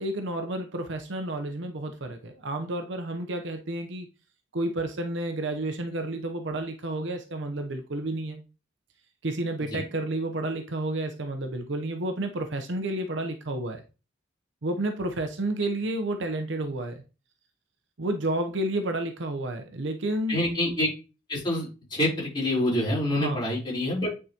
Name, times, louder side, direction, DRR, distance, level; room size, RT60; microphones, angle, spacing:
voice 1, 0.0-4.1 4.5-8.4 9.2-13.8 14.6-17.0 18.0-20.4 23.2-23.5, right 1 dB, 65° right, 0.8 m, -30 dB
voice 2, 20.3-20.9 21.3-24.1, left 1 dB, 25° left, 3.9 m, -26 dB
9.2 x 4.8 x 2.9 m
head